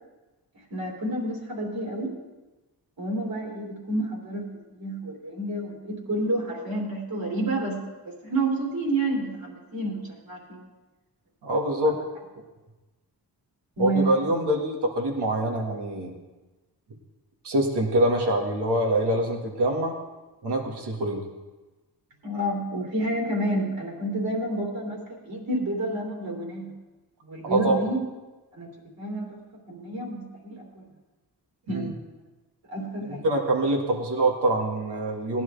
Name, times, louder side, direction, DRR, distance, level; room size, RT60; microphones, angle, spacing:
voice 1, 0.7-2.1 3.0-7.8 8.0-10.7 11.8-11.9 13.8-14.3 22.2-26.7 27.2-28.0 28.5-28.7 29.0-29.4 29.7-30.9 31.7-32.0 32.7-33.3, right 1 dB, 60° right, -2 dB, 3.2 m, -29 dB
voice 2, 11.4-12.0 13.8-16.2 17.4-20.0 20.4-21.2 27.4-27.8 31.7-31.9 33.1-35.4, right 1 dB, 80° right, 1 dB, 2.0 m, -25 dB
18.0 x 10.5 x 3.4 m, 1.2 s
wide cardioid pair, 140°, 40 cm